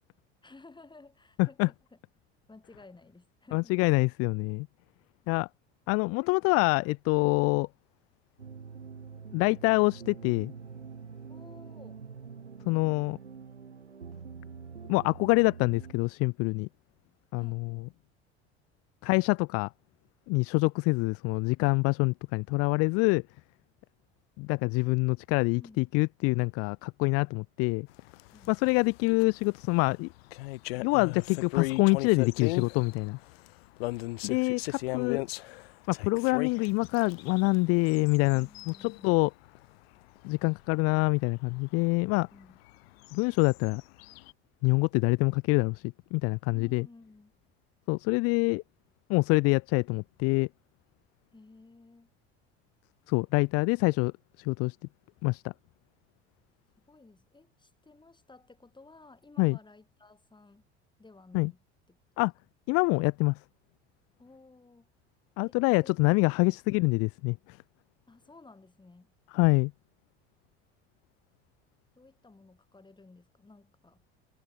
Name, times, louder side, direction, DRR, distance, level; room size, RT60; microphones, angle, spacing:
voice 1, 0.4-2.0 2.5-3.7 11.3-12.0 17.4-17.6 25.6-25.9 28.3-28.5 38.3-39.2 42.3-42.6 46.5-47.3 51.3-52.1 56.8-60.6 61.0-61.6 61.9-62.0 64.2-64.9 65.4-66.0 68.1-69.1 71.9-74.0, left 3 dB, 15° left, 5.7 m, -55 dB
voice 2, 1.4-1.7 3.5-4.7 5.3-5.5 5.9-7.7 9.3-10.5 12.7-13.2 14.9-16.7 17.3-17.7 19.0-19.7 20.3-23.2 24.4-27.9 28.5-30.1 30.8-33.2 34.2-35.2 35.9-39.3 40.2-42.3 43.1-43.8 44.6-46.9 47.9-48.6 49.1-50.5 53.1-54.1 54.4-54.8 55.2-55.4 59.4-59.6 61.3-61.5 62.2-62.3 62.7-63.4 65.4-67.4 69.3-69.7, left 27 dB, 45° left, 0.5 m, -26 dB
sound 1, 8.4-15.9, right 6 dB, 90° right, 1.2 m, -45 dB
sound 2, 27.9-39.1 39.5-39.6 40.0-40.3 40.6-40.7 41.1-41.2 41.5-41.6 42.6-44.3, left 22 dB, 65° left, 1.7 m, -37 dB
figure-of-eight pair, 65°, 33 cm